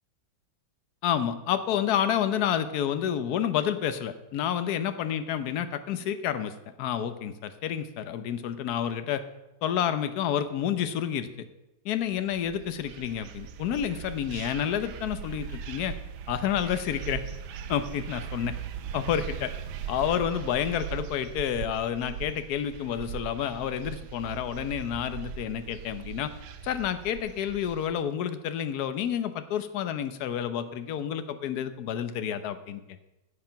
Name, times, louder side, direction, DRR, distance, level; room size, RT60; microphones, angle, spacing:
voice 1, 1.0-6.5 6.8-9.2 9.6-11.5 11.8-15.9 16.3-17.2 17.7-18.5 18.9-19.5 19.9-26.3 26.6-32.8, left 9 dB, 60° left, 10 dB, 1.2 m, -29 dB
sound 1, 12.2-27.9, right 8 dB, 85° right, 1.6 m, -39 dB
9.7 x 8.7 x 5.7 m, 0.98 s
omnidirectional pair, 2.1 m